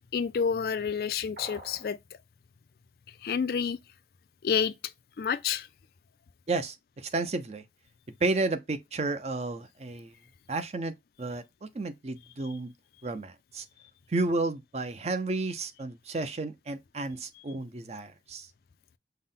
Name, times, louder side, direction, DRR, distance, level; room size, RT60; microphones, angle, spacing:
voice 1, 0.1-2.0 3.1-3.8 4.4-4.7 5.2-5.7, left 6 dB, 55° left, 0.3 m, -29 dB
sound 1, 1.4-1.9, right 1 dB, 50° right, 1.9 m, -44 dB
voice 2, 6.5-7.6 8.2-10.1 10.5-12.7 13.0-13.7 14.1-18.5, right 3 dB, 35° right, 0.5 m, -32 dB
5.6 x 2.1 x 3.6 m
head